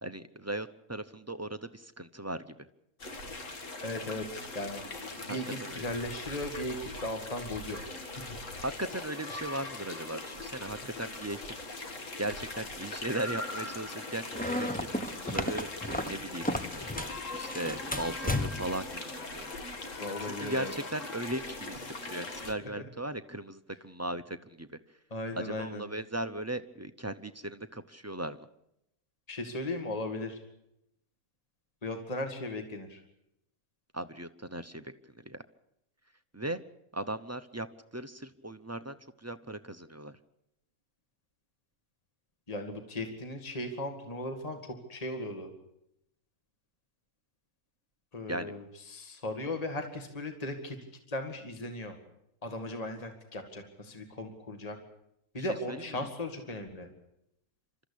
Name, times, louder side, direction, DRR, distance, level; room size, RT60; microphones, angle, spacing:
voice 1, 0.0-2.5 5.3-5.4 5.7-5.8 8.6-11.5 12.2-14.9 15.2-16.5 17.3-19.5 20.2-24.7 25.4-28.5 33.9-34.9 35.2-35.4 36.3-36.6 36.9-37.7 37.9-40.2 48.3-48.5 55.4-56.1, right 1 dB, 15° right, 9 dB, 0.5 m, -38 dB
sound 1, 3.0-22.5, left 2 dB, 60° left, 2.2 m, -41 dB
voice 2, 3.8-4.8 5.3-7.8 8.2-8.4 20.0-20.7 22.8-22.9 25.1-25.8 29.3-30.4 31.8-33.0 42.5-45.5 48.1-50.8 51.1-52.0 52.4-54.8 55.3-56.9, left 1 dB, 25° left, 5 dB, 2.1 m, -37 dB
sound 2, 14.3-17.2 17.5-18.8, left 1 dB, 5° left, 1.0 m, -33 dB
28.5 x 13.5 x 8.5 m, 0.79 s
omnidirectional pair, 1.5 m